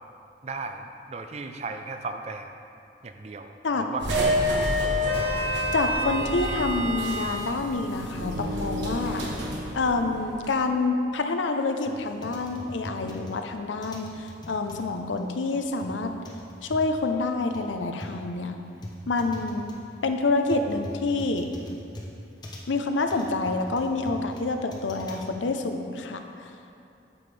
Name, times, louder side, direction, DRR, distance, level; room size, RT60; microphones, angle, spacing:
voice 1, 0.4-2.5 3.0-4.4 4.8-5.3, right 3 dB, 35° right, 6 dB, 0.4 m, -37 dB
sound 1, 4.0-10.5, equal, 75° right, 1.2 m, -28 dB
voice 2, 5.7-9.2 9.7-16.1 16.6-18.6 19.1-19.7 20.0-21.5 22.7-26.5, left 3 dB, 85° left, 5 dB, 0.6 m, -27 dB
sound 2, 11.8-25.3, left 1 dB, 20° left, 0.7 m, -42 dB
9.4 x 7.0 x 3.3 m, 2.8 s
head